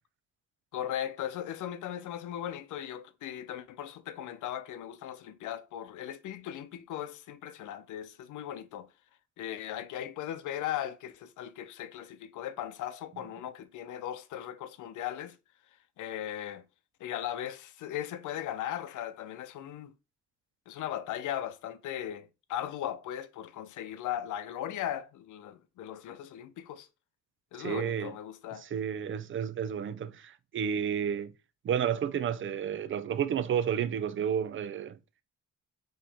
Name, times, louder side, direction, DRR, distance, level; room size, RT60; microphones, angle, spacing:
voice 1, 0.7-8.9 9.4-15.4 16.0-16.6 17.0-19.9 20.7-26.9 27.5-28.7, left 11 dB, 80° left, 0.7 m, -38 dB
voice 2, 27.6-28.1 28.6-31.3 31.6-35.0, right 8 dB, 40° right, 0.5 m, -31 dB
4.8 x 3.2 x 3.4 m
cardioid pair, 90°, 30 cm